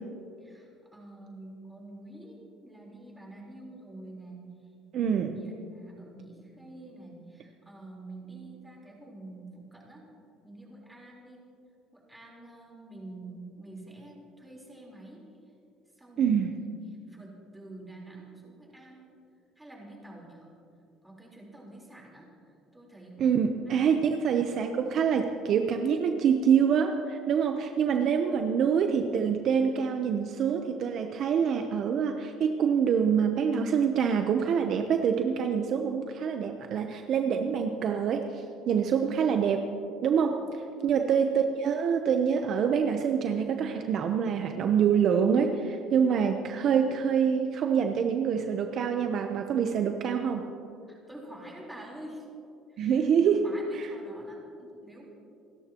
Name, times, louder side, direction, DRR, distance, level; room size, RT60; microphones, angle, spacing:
voice 1, 0.4-4.5 5.0-10.1 10.4-11.5 11.9-15.2 16.0-16.7 17.1-19.1 19.6-20.5 21.0-23.3 23.7-23.9 40.7-41.5 50.9-52.3 52.7-55.1, right 2 dB, 5° right, -3 dB, 4.0 m, -47 dB
voice 2, 4.9-5.4 16.2-16.5 23.2-39.7 40.0-50.5 52.8-53.5 53.7-53.9, right 7 dB, 50° right, 5 dB, 0.8 m, -26 dB
28.5 x 13.0 x 3.0 m, 2.7 s
cardioid pair, 135°, 0 cm